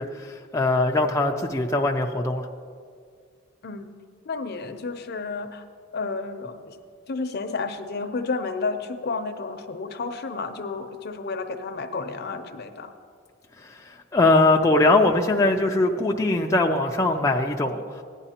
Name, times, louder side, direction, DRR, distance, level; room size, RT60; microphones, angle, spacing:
voice 1, 0.0-2.5 14.1-17.8, left 2 dB, 15° left, 0 dB, 0.4 m, -21 dB
voice 2, 3.6-3.9 4.3-5.6 5.9-6.8 7.1-12.9, left 4 dB, 55° left, 8 dB, 0.6 m, -31 dB
15.5 x 9.9 x 2.9 m, 2.1 s
head